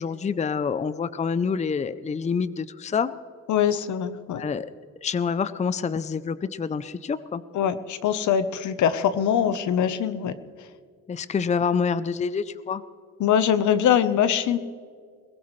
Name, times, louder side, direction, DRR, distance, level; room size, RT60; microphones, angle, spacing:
voice 1, 0.0-3.1 4.3-4.7 5.0-7.4 11.1-12.8, left 6 dB, 25° left, 14 dB, 0.5 m, -27 dB
voice 2, 3.5-4.4 7.5-10.3 13.2-14.6, left 9 dB, 75° left, 12 dB, 1.0 m, -22 dB
21.5 x 17.5 x 3.2 m, 2.1 s
cardioid pair, 90°, 30 cm